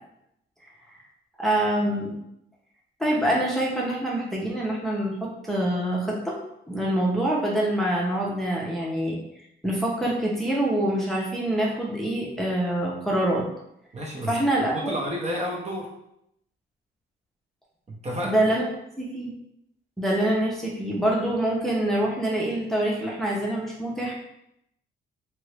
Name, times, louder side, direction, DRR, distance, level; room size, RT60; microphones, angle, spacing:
voice 1, 1.4-2.1 3.0-6.4 6.7-9.2 9.6-13.4 14.3-14.9 18.2-18.6 19.0-19.3 20.0-24.1, right 1 dB, ahead, -4 dB, 0.8 m, -25 dB
voice 2, 13.9-14.3 14.7-15.9 17.9-18.4, equal, 35° right, -2 dB, 0.9 m, -30 dB
2.9 x 2.6 x 3.3 m, 0.78 s
cardioid pair, 90°, 20 cm